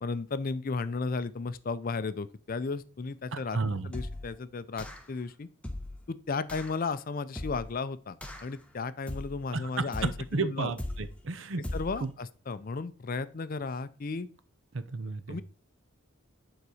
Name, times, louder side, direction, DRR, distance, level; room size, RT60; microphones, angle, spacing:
voice 1, 0.0-3.6 3.8-5.5 6.1-10.7 11.7-14.3 15.3-15.4, left 4 dB, 45° left, 0.4 m, -34 dB
voice 2, 3.3-3.9 9.5-9.8 10.3-11.6 12.0-12.1 14.7-15.4, right 3 dB, 60° right, 0.7 m, -32 dB
sound 1, 3.9-4.4 4.8-5.2 5.6-6.1 6.5-6.8 7.4-7.8 8.2-8.6 9.1-9.5 9.9-10.3 10.8-11.2 11.6-12.1, left 1 dB, 5° left, 0.7 m, -38 dB
9.6 x 4.0 x 4.9 m
head